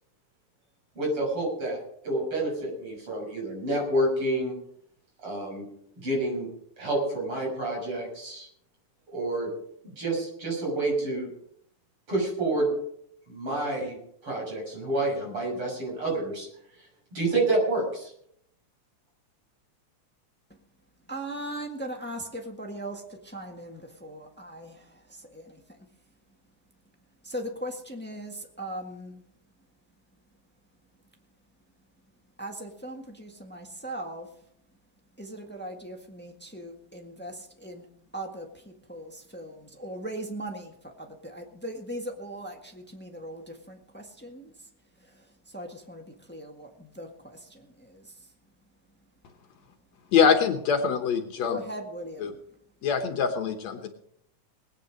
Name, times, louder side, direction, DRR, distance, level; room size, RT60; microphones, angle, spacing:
voice 1, 1.0-4.5 5.2-5.6 6.0-6.5 6.8-8.5 9.1-9.5 10.0-11.3 12.1-12.7 13.3-14.0 14.2-16.5 17.1-18.1, right 2 dB, 45° right, -2 dB, 7.3 m, -28 dB
voice 2, 21.1-23.0 23.3-24.7 27.3-29.2 32.4-34.3 35.2-37.3 37.6-37.8 38.1-38.4 38.9-40.7 41.2-43.4 43.7-44.4 45.5-46.0 46.3-46.7 47.0-47.1 51.4-52.2, right 1 dB, 10° left, 3 dB, 0.6 m, -38 dB
voice 3, 50.1-51.6 52.2-52.3 52.8-53.9, left 6 dB, 70° left, 5 dB, 2.2 m, -24 dB
20.5 x 9.3 x 5.2 m, 0.70 s
omnidirectional pair, 3.4 m